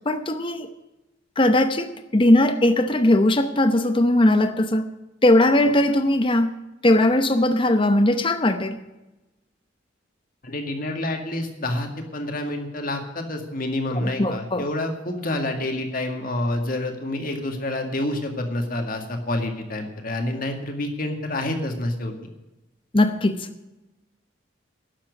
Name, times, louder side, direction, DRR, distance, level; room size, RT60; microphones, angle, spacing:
voice 1, 0.0-0.7 1.4-4.9 5.2-6.5 6.8-8.8 13.9-14.6 22.9-23.5, left 1 dB, 25° left, 0.8 m, -19 dB
voice 2, 10.4-22.1, left 1 dB, 45° left, 2.1 m, -28 dB
11.5 x 7.5 x 9.4 m
head